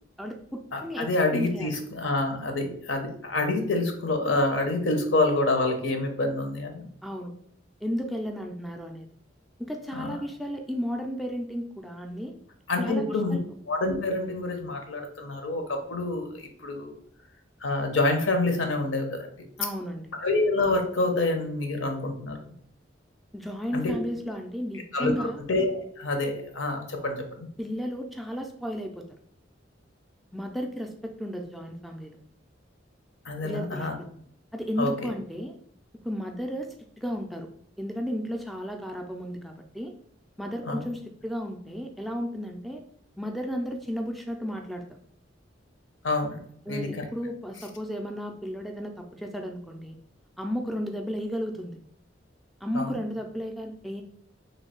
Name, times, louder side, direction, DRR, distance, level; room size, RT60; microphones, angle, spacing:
voice 1, 0.2-1.8 7.0-7.3 7.8-9.1 9.6-12.3 12.8-13.4 19.6-20.1 23.3-25.4 27.6-29.0 30.3-32.2 33.4-34.1 34.5-35.6 36.0-37.5 37.8-39.9 40.4-42.8 43.2-44.8 46.7-50.0 50.4-51.8 52.6-54.0, equal, ahead, 3 dB, 0.3 m, -33 dB
voice 2, 0.7-6.9 9.9-10.2 12.7-13.4 13.7-16.9 17.6-19.3 20.2-22.4 23.7-23.9 24.9-27.5 33.2-34.0 34.8-34.9 40.7-40.8 46.0-46.4 46.7-47.0 52.7-53.0, left 2 dB, 80° left, 4 dB, 0.8 m, -27 dB
3.2 x 2.6 x 4.3 m, 0.64 s
head